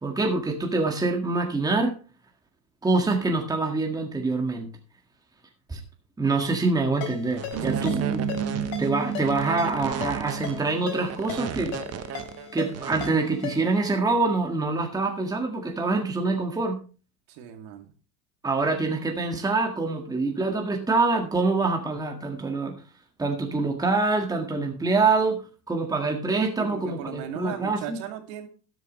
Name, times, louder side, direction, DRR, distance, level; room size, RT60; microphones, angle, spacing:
voice 1, 0.0-1.9 2.8-4.7 5.7-5.8 6.2-8.4 8.8-11.8 12.5-16.8 18.4-22.8 23.2-28.0, right 3 dB, 10° right, 3 dB, 1.7 m, -25 dB
Ringtone, 7.0-13.9, left 9 dB, 60° left, 4.8 m, -39 dB
sound 1, 7.3-13.1, right 10 dB, 30° right, 1.0 m, -35 dB
sound 2, 7.5-11.8, right 7 dB, 75° right, 3.2 m, -32 dB
voice 2, 7.6-8.2 17.3-17.9 26.6-28.5, right 9 dB, 55° right, 5 dB, 2.5 m, -37 dB
12.5 x 11.0 x 3.1 m, 0.35 s
supercardioid pair, 120°, 48 cm